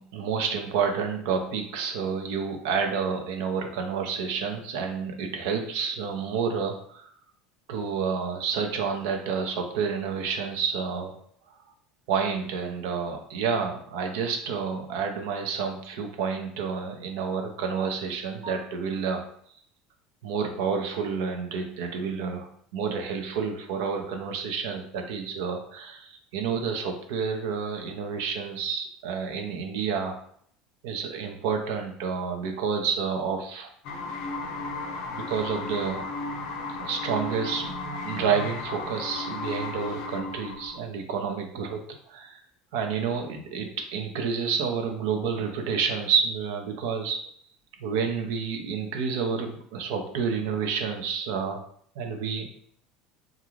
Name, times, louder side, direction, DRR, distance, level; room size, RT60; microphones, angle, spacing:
voice 1, 0.0-7.1 7.7-11.2 12.1-19.2 20.2-30.2 30.8-33.7 35.1-36.0 36.8-37.7 38.0-41.8 42.1-42.4 42.7-47.2 47.8-51.6 52.0-52.5, right 6 dB, 75° right, 4 dB, 0.5 m, -29 dB
sound 1, 33.8-40.8, left 2 dB, 65° left, 0.4 m, -34 dB
2.4 x 2.3 x 3.0 m, 0.63 s
hypercardioid pair, 90°, 0 cm